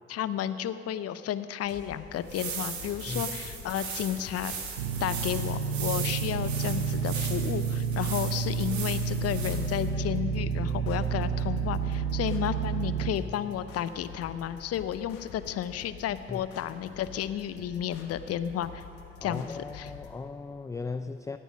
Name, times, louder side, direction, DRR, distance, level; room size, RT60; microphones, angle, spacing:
voice 1, 0.1-4.5 5.0-18.8 19.2-19.9, left 10 dB, 45° left, 13 dB, 0.7 m, -32 dB
sound 1, 1.6-20.1, left 7 dB, 75° left, 1.3 m, -48 dB
sound 2, 2.1-9.9, right 6 dB, 60° right, 2.2 m, -38 dB
sound 3, 4.8-13.1, right 6 dB, 85° right, 0.8 m, -30 dB
voice 2, 19.2-21.4, left 4 dB, 10° left, 10 dB, 0.4 m, -37 dB
17.0 x 9.1 x 6.3 m, 2.8 s
hypercardioid pair, 50°, 33 cm